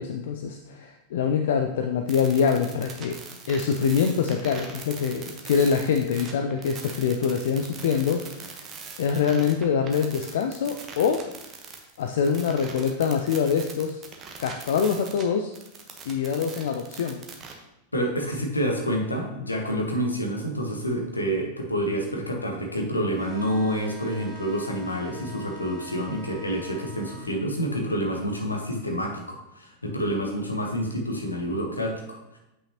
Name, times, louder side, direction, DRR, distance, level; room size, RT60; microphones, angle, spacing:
voice 1, 0.0-3.2 3.5-8.7 9.0-11.3 12.0-14.0 14.4-15.5 16.1-17.2, left 6 dB, 60° left, 5 dB, 0.4 m, -25 dB
sound 1, 2.1-15.2 15.5-17.5, right 5 dB, 30° right, 1.1 m, -42 dB
voice 2, 17.9-32.4, equal, 80° left, 1 dB, 1.2 m, -28 dB
sound 2, 23.2-27.3, equal, 5° right, 1.8 m, -44 dB
8.2 x 5.7 x 2.9 m, 0.91 s
figure-of-eight pair, 90°, 0 cm